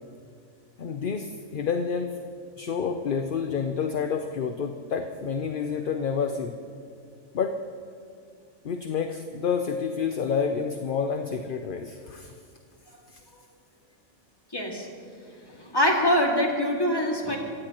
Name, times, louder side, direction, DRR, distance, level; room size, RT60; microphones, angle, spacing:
voice 1, 0.8-2.1 2.6-6.6 7.3-7.6 8.6-12.3, left 6 dB, 50° left, 6 dB, 0.8 m, -29 dB
voice 2, 14.5-14.9 15.5-17.4, equal, 20° left, -1 dB, 2.2 m, -24 dB
24.5 x 16.0 x 3.0 m, 2.2 s
omnidirectional pair, 1.3 m